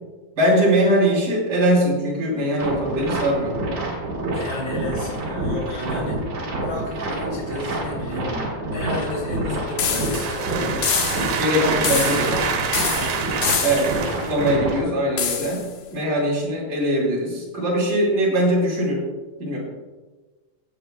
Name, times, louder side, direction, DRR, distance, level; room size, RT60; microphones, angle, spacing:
voice 1, 0.4-3.6 11.4-12.3 13.6-15.6 15.9-19.0 19.4-19.6, equal, 30° right, -4 dB, 4.0 m, -21 dB
sound 1, 2.6-14.8, right 1 dB, 45° right, 3.0 m, -28 dB
voice 2, 4.3-6.3 6.6-10.8 11.3-12.6 12.8-13.7, left 2 dB, 20° left, -3 dB, 3.2 m, -32 dB
sound 2, 9.7-14.8, right 6 dB, 70° right, 2.6 m, -28 dB
sound 3, 9.8-10.4 10.8-11.5 11.8-12.4 12.7-14.1 15.2-15.7, left 7 dB, 70° left, 2.1 m, -26 dB
20.0 x 9.3 x 2.3 m, 1.3 s
omnidirectional pair, 5.0 m